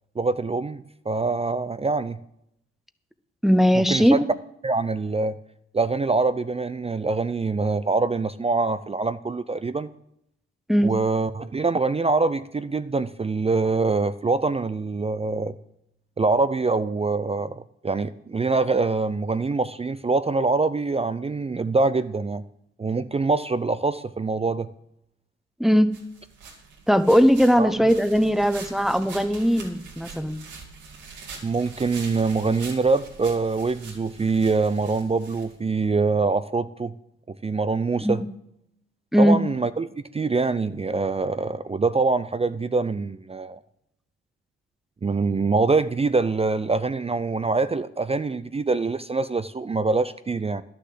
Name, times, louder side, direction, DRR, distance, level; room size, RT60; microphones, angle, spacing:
voice 1, 0.2-2.2 3.9-4.2 4.6-5.4 5.7-9.9 10.8-15.6 16.2-22.4 22.8-24.7 27.6-27.8 31.4-36.9 37.3-38.2 39.2-43.6 45.0-50.6, right 3 dB, 20° right, 13 dB, 0.5 m, -24 dB
voice 2, 3.4-4.2 10.7-10.9 25.6-26.0 26.9-30.4 38.0-38.3 39.1-39.4, equal, ahead, 11 dB, 0.9 m, -19 dB
sound 1, 25.9-35.9, right 4 dB, 80° right, 2.6 m, -43 dB
11.5 x 6.8 x 7.6 m, 0.77 s
hypercardioid pair, 50°, 30 cm